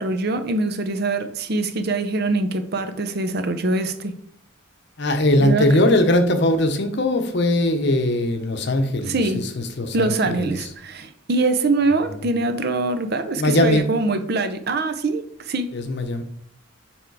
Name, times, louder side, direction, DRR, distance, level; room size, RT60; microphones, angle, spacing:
voice 1, 0.0-4.2 5.4-5.7 9.1-9.4 9.9-15.8, right 2 dB, 50° right, 0.6 m, -23 dB
voice 2, 5.0-10.6 12.1-12.3 13.4-13.8 15.7-16.2, left 1 dB, 50° left, 0.8 m, -20 dB
7.1 x 3.6 x 4.7 m
head